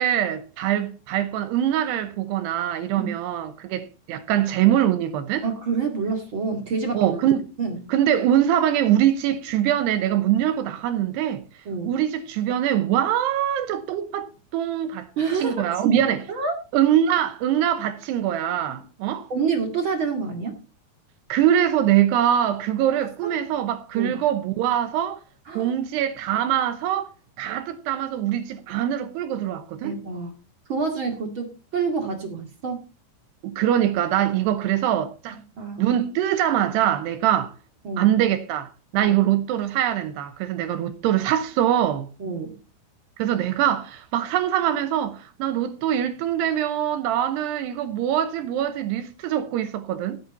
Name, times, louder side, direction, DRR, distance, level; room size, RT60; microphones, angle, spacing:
voice 1, 0.0-5.5 6.9-7.5 7.9-11.4 11.8-15.1 15.4-16.2 16.7-19.3 21.3-25.2 25.5-27.1 27.4-30.0 33.4-35.4 35.8-37.6 38.0-38.7 38.9-42.1 43.2-50.2, right 11 dB, 75° right, 2.8 m, -23 dB
voice 2, 5.4-7.2 7.6-7.8 11.7-12.0 15.2-16.5 18.7-18.8 19.3-20.6 23.2-23.3 23.9-24.2 25.5-25.7 29.8-30.3 30.7-32.8 35.6-35.8 37.8-38.1 39.0-39.2 42.2-42.6, right 5 dB, 40° right, 1.9 m, -27 dB
16.5 x 8.7 x 4.2 m
omnidirectional pair, 5.1 m